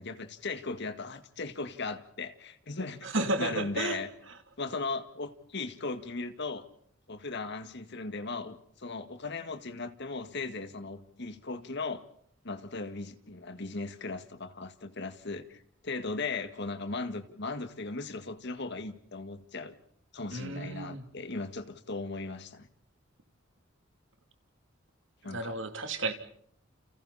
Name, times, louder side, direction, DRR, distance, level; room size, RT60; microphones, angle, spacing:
voice 1, 0.0-3.1 3.4-4.1 4.6-6.7 7.1-12.0 12.4-19.8 20.1-22.7 25.2-25.6, left 3 dB, 60° left, 9 dB, 1.9 m, -37 dB
voice 2, 3.0-4.0 20.3-21.0 25.3-26.1, right 2 dB, 65° right, 7 dB, 3.0 m, -32 dB
30.0 x 30.0 x 4.2 m, 0.63 s
head